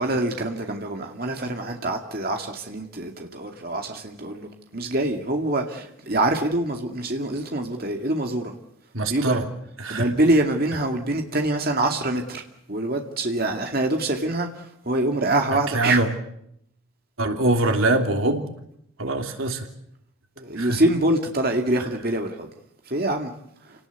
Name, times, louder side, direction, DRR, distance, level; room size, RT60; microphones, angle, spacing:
voice 1, 0.0-8.5 9.1-9.4 9.9-12.4 12.7-16.0 20.4-22.5 22.9-23.3, right 1 dB, 45° right, 2.3 m, -25 dB
voice 2, 8.9-9.5 9.8-10.1 15.5-16.1 17.2-18.5 19.0-19.7 20.5-20.8 21.8-21.9, right 2 dB, 85° right, 3.3 m, -23 dB
29.0 x 19.0 x 8.2 m
head